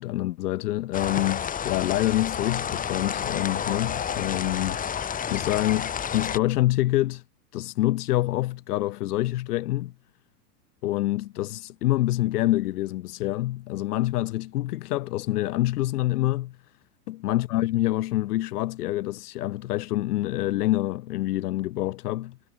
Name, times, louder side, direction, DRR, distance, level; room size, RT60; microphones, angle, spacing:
voice 1, 0.0-7.2 7.5-9.9 10.8-16.6 17.1-22.4, left 16 dB, 75° left, 3.4 m, -26 dB
sound 1, 0.9-6.4, left 8 dB, 15° left, 2.8 m, -30 dB
supercardioid pair, 155°, 46 cm